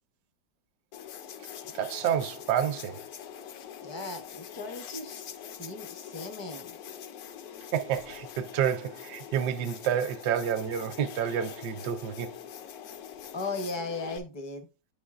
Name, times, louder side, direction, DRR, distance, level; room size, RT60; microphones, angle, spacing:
sound 1, 0.9-14.2, left 9 dB, 70° left, 1.0 m, -44 dB
voice 1, 1.7-3.0 7.7-12.4, right 9 dB, 75° right, 1.1 m, -29 dB
voice 2, 3.8-6.8 13.3-14.7, left 3 dB, 35° left, 0.4 m, -37 dB
8.4 x 5.4 x 2.4 m
omnidirectional pair, 1.9 m